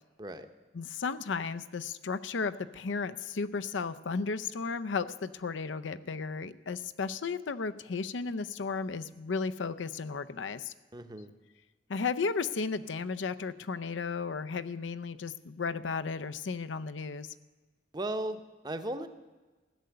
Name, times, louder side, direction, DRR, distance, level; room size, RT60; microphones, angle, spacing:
voice 1, 0.7-10.7 11.9-17.3, left 4 dB, 90° left, 11 dB, 0.6 m, -34 dB
voice 2, 10.9-11.3 17.9-19.1, right 1 dB, 20° right, 9 dB, 0.7 m, -36 dB
15.0 x 6.7 x 9.4 m, 1.2 s
head